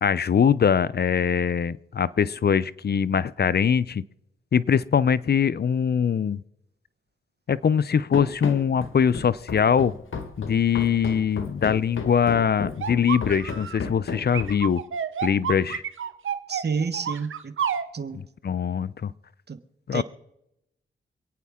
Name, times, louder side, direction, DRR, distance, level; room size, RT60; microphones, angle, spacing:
voice 1, 0.0-4.0 4.5-6.4 7.5-9.9 10.4-14.8 15.2-15.8 18.4-19.1 19.9-20.0, left 7 dB, 50° left, 19 dB, 0.5 m, -22 dB
Run, 8.1-14.8, left 4 dB, 70° left, 1.6 m, -34 dB
sound 1, 12.8-13.8 14.3-17.9, right 8 dB, 75° right, 0.9 m, -29 dB
voice 2, 16.5-17.5 17.9-18.2 19.5-19.6 19.9-20.0, right 5 dB, 50° right, 11 dB, 1.2 m, -29 dB
27.0 x 9.3 x 3.7 m, 0.83 s
cardioid pair, 50°, 21 cm